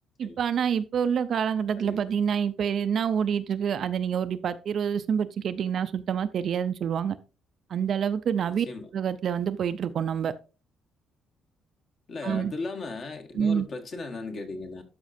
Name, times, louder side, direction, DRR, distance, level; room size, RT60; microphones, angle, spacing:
voice 1, 0.2-7.2 7.7-8.7 8.9-10.3 12.2-12.5 13.3-13.7, right 7 dB, 45° right, 0.5 m, -27 dB
voice 2, 1.8-2.1 8.5-8.9 12.1-14.8, left 3 dB, 40° left, 1.3 m, -37 dB
12.5 x 5.1 x 2.6 m
cardioid pair, 155°, 0 cm